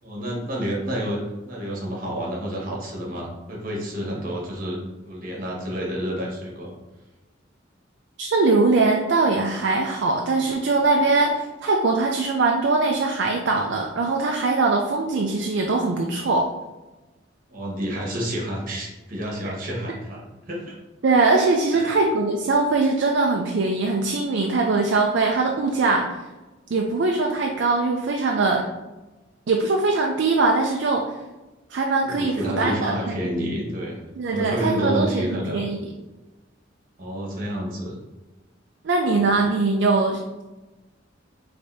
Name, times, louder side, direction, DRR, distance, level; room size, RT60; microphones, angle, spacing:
voice 1, 0.0-4.8 5.1-6.7 17.5-20.7 21.7-22.0 32.0-34.0 34.3-35.6 37.0-38.0, equal, 45° right, -2 dB, 1.3 m, -29 dB
voice 2, 8.2-16.5 21.0-26.2 26.7-28.7 29.5-31.1 31.7-33.2 34.2-35.8 38.8-40.4, right 3 dB, 60° right, 1 dB, 0.4 m, -21 dB
5.0 x 3.3 x 2.7 m, 1.1 s
head